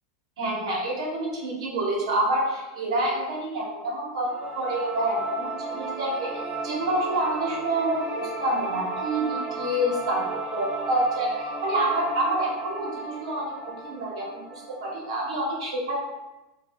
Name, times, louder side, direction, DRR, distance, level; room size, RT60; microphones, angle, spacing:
voice 1, 0.4-6.3 6.6-10.3 10.5-13.5 13.8-14.4 14.8-16.0, right 1 dB, 85° right, -3 dB, 0.9 m, -27 dB
sound 1, 4.2-15.3, right 3 dB, 20° right, 0.4 m, -35 dB
2.3 x 2.2 x 3.4 m, 1.1 s
supercardioid pair, 175°, 3 cm